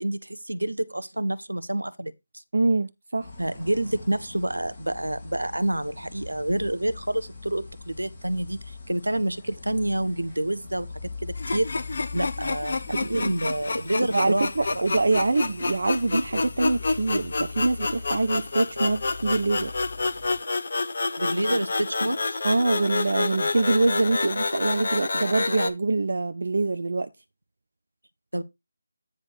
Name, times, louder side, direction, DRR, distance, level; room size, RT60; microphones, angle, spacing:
voice 1, 0.0-2.1 3.4-8.6 8.9-10.9 11.2-11.7 12.1-14.5 14.7-14.9 21.2-22.4 28.3-28.4, right 1 dB, 80° right, 0.9 m, -28 dB
voice 2, 2.5-3.3 12.9-13.3 14.1-19.7 22.4-27.1, right 3 dB, 55° right, 0.5 m, -25 dB
sound 1, 3.2-20.4, left 4 dB, 25° left, 4.1 m, -42 dB
sound 2, 11.4-25.7, left 3 dB, 50° left, 0.9 m, -29 dB
9.7 x 4.3 x 4.8 m
figure-of-eight pair, 155°, 0 cm